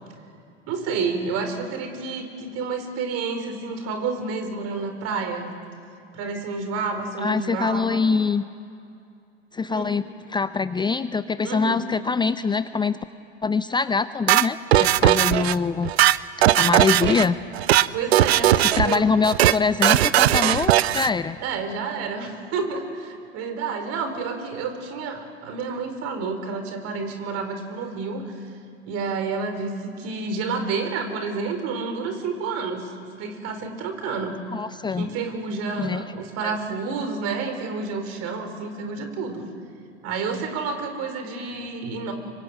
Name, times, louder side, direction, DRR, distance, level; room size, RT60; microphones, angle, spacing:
voice 1, 0.7-5.5 6.1-8.0 9.7-9.8 11.4-11.8 17.9-19.1 21.4-28.3 28.9-34.4 34.9-39.4 40.0-42.1, right 4 dB, 50° right, 6 dB, 4.7 m, -29 dB
voice 2, 7.2-8.4 9.5-13.0 13.4-15.9 16.5-17.4 18.6-21.4 34.5-35.1 35.8-36.0 36.4-36.5, left 4 dB, 15° left, 13 dB, 0.6 m, -24 dB
sound 1, 14.3-15.5 15.8-17.2 17.5-17.9 18.1-19.0 19.2-19.6 19.8-21.1, right 13 dB, 70° right, 0.8 m, -18 dB
25.5 x 24.0 x 9.3 m, 2.5 s
figure-of-eight pair, 80°, 33 cm